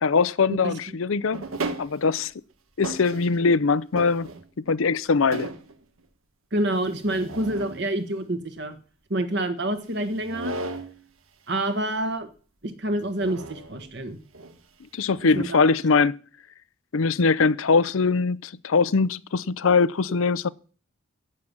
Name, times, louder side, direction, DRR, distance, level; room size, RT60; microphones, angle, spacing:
voice 1, 0.0-1.4 1.8-2.3 2.8-4.3 4.7-5.5 14.9-16.2 16.9-20.5, left 4 dB, 75° left, 0.6 m, -22 dB
sound 1, 1.3-2.3 2.8-3.5 4.0-4.7 5.1-5.8 6.8-7.8 10.1-11.0 13.2-13.9 14.3-14.6 15.2-15.5, right 2 dB, 85° right, 1.4 m, -35 dB
voice 2, 6.5-8.7 9.1-10.6 11.5-12.3 12.6-14.2 15.3-15.6, right 1 dB, 50° right, 1.4 m, -27 dB
11.0 x 7.5 x 9.7 m
head